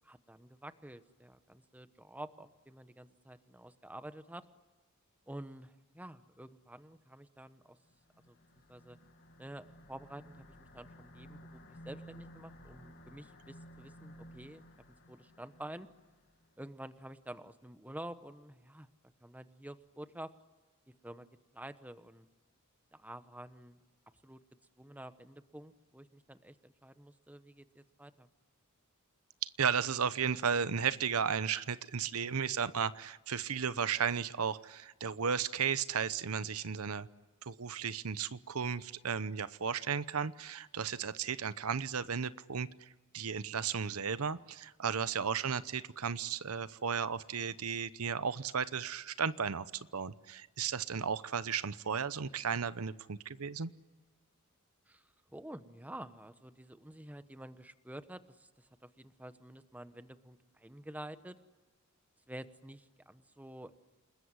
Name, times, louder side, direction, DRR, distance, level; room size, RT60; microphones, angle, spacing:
voice 1, 0.0-4.4 5.3-7.8 8.3-8.4 8.7-9.0 9.4-14.6 15.1-15.9 16.6-18.9 19.2-20.3 21.0-21.3 21.5-22.3 22.9-23.8 24.2-24.4 24.8-28.3 32.2-32.6 54.9-61.4 62.3-63.7, right 1 dB, 5° right, 11 dB, 1.0 m, -49 dB
sound 1, 7.9-16.5, equal, 55° left, 2.2 m, -55 dB
voice 2, 29.4-37.1 37.4-42.7 43.1-49.7 49.9-53.7, right 6 dB, 75° right, 15 dB, 0.8 m, -34 dB
29.0 x 20.5 x 9.8 m, 1.3 s
head